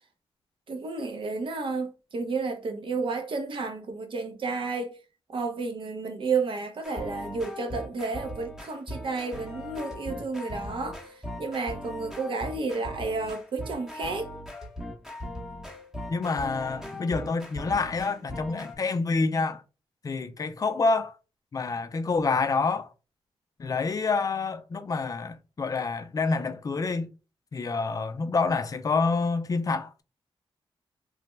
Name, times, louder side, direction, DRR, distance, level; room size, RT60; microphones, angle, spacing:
voice 1, 0.7-4.9 5.3-11.0 11.4-14.3, right 4 dB, 55° right, 0.7 m, -31 dB
sound 1, 6.8-18.8, left 1 dB, 5° right, 0.9 m, -39 dB
voice 2, 16.1-19.6 20.0-21.1 21.5-22.9 23.6-27.1 27.5-30.0, left 4 dB, 35° left, 0.4 m, -27 dB
3.2 x 2.1 x 3.1 m
wide cardioid pair, 110°, 10 cm